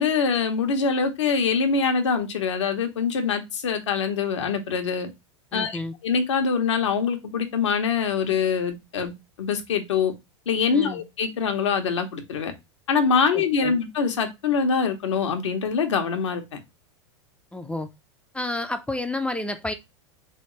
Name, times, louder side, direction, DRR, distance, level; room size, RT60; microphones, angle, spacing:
voice 1, 0.0-5.1 5.5-9.1 9.4-10.1 10.5-12.5 12.9-16.6, left 5 dB, 80° left, 1.0 m, -24 dB
voice 2, 5.5-5.9 10.7-11.0 13.3-13.8 17.5-17.9 18.3-19.7, left 2 dB, 5° left, 0.4 m, -30 dB
3.7 x 3.4 x 3.0 m
hypercardioid pair, 95°, 15 cm